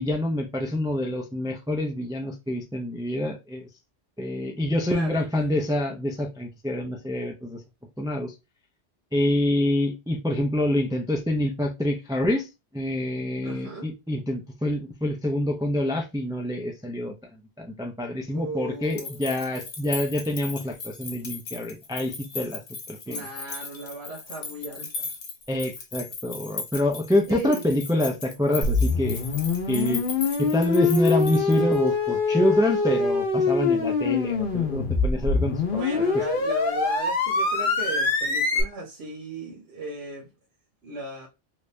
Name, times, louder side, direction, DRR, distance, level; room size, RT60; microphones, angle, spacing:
voice 1, 0.0-3.7 4.2-7.6 8.0-8.3 9.1-12.5 12.7-17.1 17.6-22.6 22.9-23.3 25.5-29.2 29.7-30.0 30.4-35.6 35.9-36.0, left 1 dB, 5° right, 0.4 m, -26 dB
voice 2, 4.9-5.2 13.4-13.9 18.3-19.1 23.1-25.1 27.3-27.7 35.6-40.3 40.8-41.3, right 2 dB, 80° right, 1.0 m, -36 dB
sound 1, 18.8-31.9, left 4 dB, 80° left, 1.1 m, -37 dB
sound 2, 28.6-38.6, left 4 dB, 60° left, 1.0 m, -24 dB
3.3 x 2.6 x 3.2 m
omnidirectional pair, 1.1 m